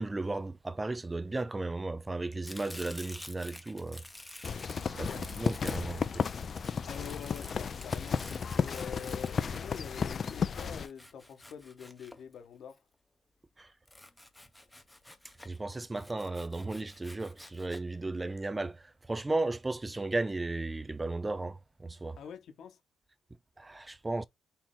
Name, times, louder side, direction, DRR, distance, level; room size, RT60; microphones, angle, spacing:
voice 1, 0.0-4.0 4.6-6.3 13.6-13.7 15.4-22.2 23.6-24.2, right 2 dB, 15° right, 0.4 m, -35 dB
Domestic sounds home sounds, 2.4-12.7 13.9-15.6 16.0-17.8, left 1 dB, 10° left, 0.8 m, -50 dB
sound 1, 4.4-10.9, left 6 dB, 45° left, 0.5 m, -33 dB
voice 2, 6.9-8.2 8.5-12.8 22.2-22.8, left 7 dB, 70° left, 1.2 m, -45 dB
4.4 x 2.9 x 3.7 m
cardioid pair, 90°, 0 cm